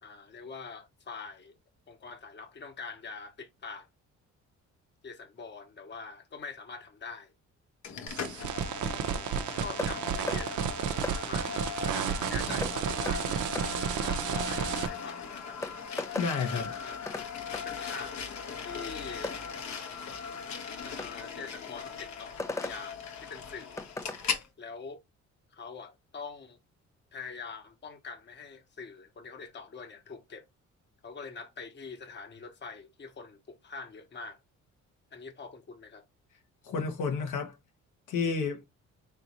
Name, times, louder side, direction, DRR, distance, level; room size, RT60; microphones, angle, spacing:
voice 1, 0.0-1.5 1.9-3.9 5.0-7.3 8.7-10.6 11.0-11.6 11.9-13.4 13.7-15.6 16.8-17.0 17.5-18.2 18.6-19.4 20.8-23.8 24.6-25.0 25.5-26.6 27.1-30.5 31.0-34.4 35.1-36.0, left 4 dB, 35° left, 1.0 m, -44 dB
sound 1, 7.8-24.5, left 6 dB, 65° left, 1.1 m, -39 dB
sound 2, 8.1-14.9, right 8 dB, 75° right, 0.7 m, -32 dB
sound 3, 9.8-9.9 10.3-10.4 11.0-11.2 12.6-12.8 13.1-13.2 13.6-13.7 15.1-15.2 15.6-16.3 17.1-17.3 17.5-17.7 19.2-19.4 21.0-21.1 22.4-22.8 23.8-24.2, left 2 dB, 10° left, 0.5 m, -36 dB
voice 2, 16.2-16.7 36.6-37.6 38.1-38.6, left 5 dB, 85° left, 1.3 m, -30 dB
4.0 x 3.4 x 3.0 m
cardioid pair, 90°, 30 cm